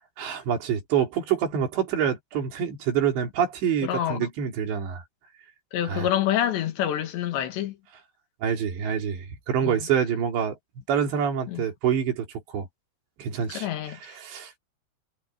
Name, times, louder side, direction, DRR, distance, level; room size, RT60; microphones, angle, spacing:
voice 1, 0.2-5.0 5.8-6.1 8.4-10.6 10.9-12.7 13.2-14.5, right 8 dB, 85° right, 5.7 m, -26 dB
voice 2, 3.8-4.3 5.7-7.8 9.6-9.8 11.5-11.7 13.5-14.1, left 11 dB, 85° left, 4.2 m, -27 dB
omnidirectional pair, 4.9 m